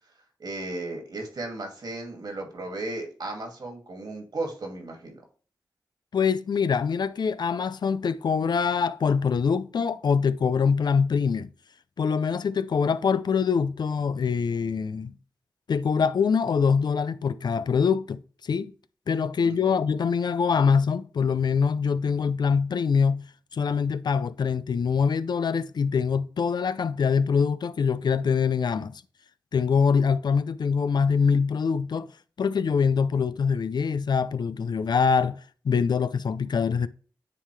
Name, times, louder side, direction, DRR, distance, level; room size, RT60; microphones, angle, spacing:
voice 1, 0.4-5.2 19.4-19.8, right 2 dB, 65° right, 2.3 m, -35 dB
voice 2, 6.1-11.5 12.0-15.1 15.7-18.7 19.1-23.2 23.5-29.0 29.5-32.1 32.4-35.4 35.6-36.9, left 6 dB, 70° left, 0.4 m, -24 dB
9.9 x 3.8 x 3.3 m
cardioid pair, 65°, 8 cm